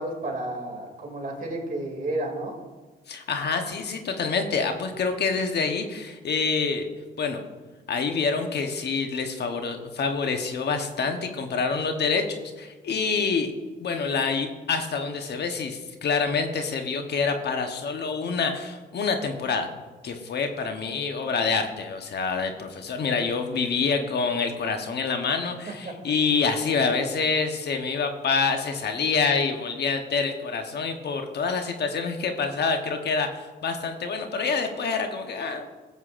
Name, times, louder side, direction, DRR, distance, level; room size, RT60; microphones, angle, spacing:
voice 1, 0.0-2.6 25.8-25.9, right 1 dB, 45° right, 1 dB, 2.6 m, -31 dB
voice 2, 3.1-6.9 7.2-7.4 7.9-12.2 12.6-13.5 13.8-19.7 20.0-35.7, left 5 dB, 55° left, 5 dB, 1.1 m, -27 dB
16.5 x 8.0 x 2.6 m, 1.3 s
cardioid pair, 90°, 20 cm